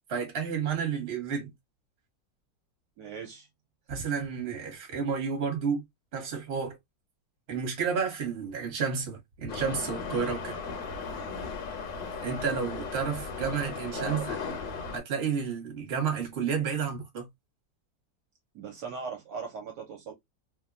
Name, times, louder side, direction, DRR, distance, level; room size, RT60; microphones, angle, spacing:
voice 1, 0.1-1.5 3.9-5.8 6.1-6.8 7.5-10.6 12.2-14.4 14.9-17.3, right 6 dB, 40° right, 1.1 m, -31 dB
voice 2, 3.0-3.5 13.9-14.4 18.5-20.1, right 5 dB, 70° right, 1.1 m, -39 dB
Subway metro underground, 9.5-15.0, left 5 dB, 80° left, 1.4 m, -36 dB
3.1 x 2.2 x 2.4 m
omnidirectional pair, 2.0 m